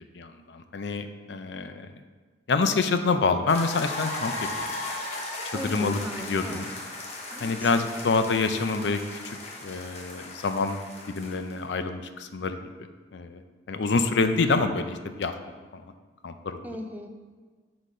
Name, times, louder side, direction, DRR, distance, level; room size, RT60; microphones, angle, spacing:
voice 1, 0.2-1.9 2.5-4.3 4.6-4.7 5.6-6.0 6.3-6.7 7.4-9.0 9.2-10.8 11.1-12.6 13.1-13.4 13.7-15.3 15.7-15.8 16.2-16.6, left 4 dB, 70° left, 8 dB, 0.5 m, -26 dB
sound 1, 3.5-11.6, left 2 dB, 35° left, 0.8 m, -37 dB
voice 2, 5.5-6.6 7.3-8.0 16.6-17.1, left 1 dB, 10° right, 3 dB, 0.5 m, -38 dB
6.6 x 4.0 x 5.0 m, 1.4 s
head